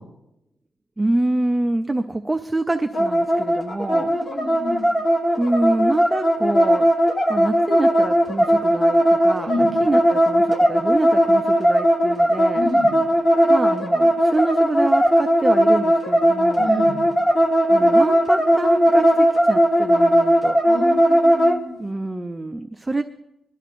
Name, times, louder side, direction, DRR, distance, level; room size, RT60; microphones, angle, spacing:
voice 1, 1.0-4.2 5.4-6.9 7.3-12.6 13.5-16.8 17.7-20.6 21.8-23.0, right 2 dB, 10° right, 7 dB, 0.4 m, -26 dB
sound 1, 2.9-21.6, equal, 20° left, 1.3 m, -18 dB
voice 2, 3.9-4.8 9.4-9.7 12.5-12.9 16.6-17.0 20.7-21.8, left 1 dB, 45° left, -6 dB, 4.9 m, -29 dB
21.5 x 12.5 x 2.5 m, 0.86 s
wide cardioid pair, 150°, 0 cm